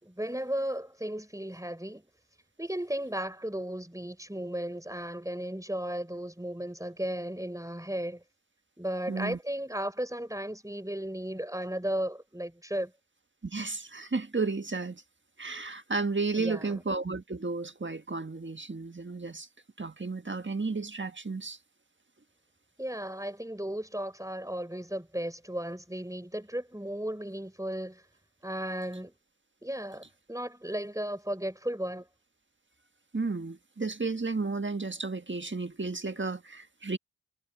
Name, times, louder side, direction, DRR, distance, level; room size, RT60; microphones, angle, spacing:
voice 1, 0.0-2.1 2.6-8.2 8.8-12.9 16.4-16.8 22.8-28.0 28.4-29.1 29.6-32.1, right 1 dB, 10° right, 4.7 m, -35 dB
voice 2, 9.1-9.4 13.4-15.0 15.4-19.5 19.8-21.6 33.1-37.0, right 3 dB, 30° right, 1.5 m, -33 dB
cardioid pair, 50°, 40 cm